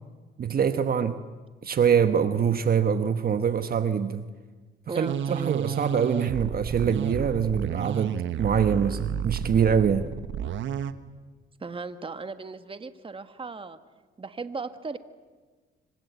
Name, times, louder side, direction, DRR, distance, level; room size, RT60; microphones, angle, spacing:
voice 1, 0.4-1.2 1.6-4.3 5.0-10.1, right 7 dB, 50° right, 10 dB, 1.3 m, -24 dB
voice 2, 4.9-5.6 11.6-13.8 14.2-15.0, right 4 dB, 25° right, 10 dB, 1.6 m, -36 dB
sound 1, 5.1-10.9, right 8 dB, 70° right, 1.3 m, -31 dB
26.0 x 25.0 x 8.3 m, 1.4 s
cardioid pair, 90°, 20 cm